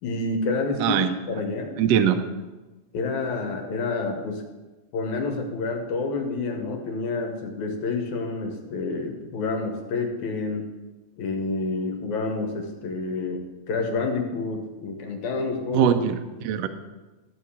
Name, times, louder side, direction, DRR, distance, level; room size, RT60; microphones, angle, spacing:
voice 1, 0.0-1.8 2.9-4.4 4.9-10.7 11.2-15.9 16.4-16.5, left 3 dB, 75° left, 3 dB, 2.7 m, -29 dB
voice 2, 0.8-1.1 1.8-2.2 15.7-16.7, right 9 dB, 75° right, 8 dB, 1.6 m, -22 dB
14.0 x 4.9 x 7.2 m, 1.2 s
omnidirectional pair, 3.5 m